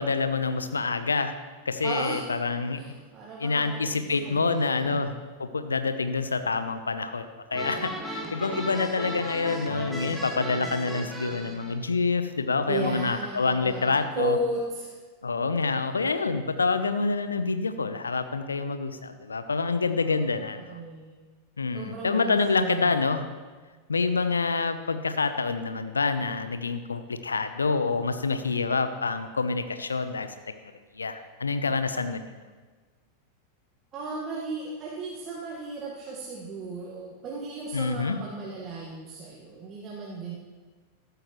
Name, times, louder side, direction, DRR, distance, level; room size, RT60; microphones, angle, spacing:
voice 1, 0.0-1.3 1.7-2.9 3.4-5.1 5.4-14.4 15.2-20.8 21.6-23.2 23.9-30.3 31.0-32.2 37.7-38.2, left 4 dB, 75° left, 10 dB, 0.7 m, -27 dB
voice 2, 1.8-2.2 2.7-5.0 12.7-15.0 20.0-21.1 21.7-23.0 33.9-40.3, right 2 dB, 30° right, -4 dB, 1.7 m, -35 dB
sound 1, 7.5-11.8, equal, 5° right, 1.8 m, -36 dB
14.0 x 11.5 x 3.1 m, 1.4 s
figure-of-eight pair, 90°, 0 cm